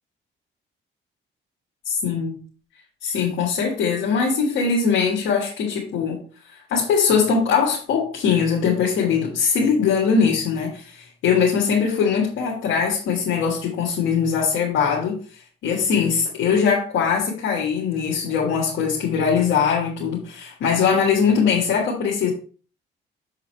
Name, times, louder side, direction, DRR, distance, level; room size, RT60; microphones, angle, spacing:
voice 1, 1.8-2.3 3.0-6.2 6.7-15.2 15.6-22.3, left 6 dB, 80° left, -4 dB, 1.6 m, -21 dB
7.0 x 3.9 x 4.4 m, 0.40 s
cardioid pair, 90°, 20 cm